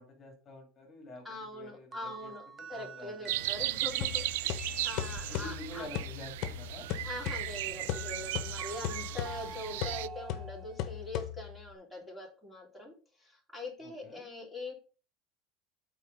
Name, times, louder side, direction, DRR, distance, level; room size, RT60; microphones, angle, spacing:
voice 1, 0.0-1.3 1.5-2.3 2.7-3.7 4.6-4.9 5.3-6.9 13.8-14.2, left 1 dB, 25° left, 0 dB, 2.6 m, -48 dB
voice 2, 1.2-5.9 7.0-14.7, left 1 dB, 5° right, -1 dB, 3.2 m, -43 dB
sound 1, 1.9-5.7 7.2-11.0, right 5 dB, 30° right, 0.7 m, -47 dB
sound 2, 3.3-10.1, right 15 dB, 85° right, 0.3 m, -36 dB
sound 3, 4.0-11.7, left 11 dB, 50° left, 1.0 m, -39 dB
8.2 x 4.7 x 5.4 m, 0.36 s
supercardioid pair, 135°, 0 cm